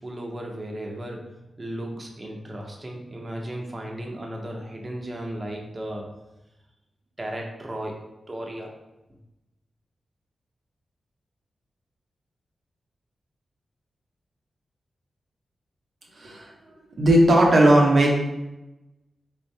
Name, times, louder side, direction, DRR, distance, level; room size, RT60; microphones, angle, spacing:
voice 1, 0.0-1.3 1.6-6.1 7.2-8.7, right 1 dB, 30° right, 0 dB, 0.8 m, -35 dB
voice 2, 17.0-18.1, right 1 dB, 65° right, -1 dB, 0.8 m, -16 dB
3.6 x 3.4 x 2.8 m, 0.97 s
cardioid pair, 70°, 0 cm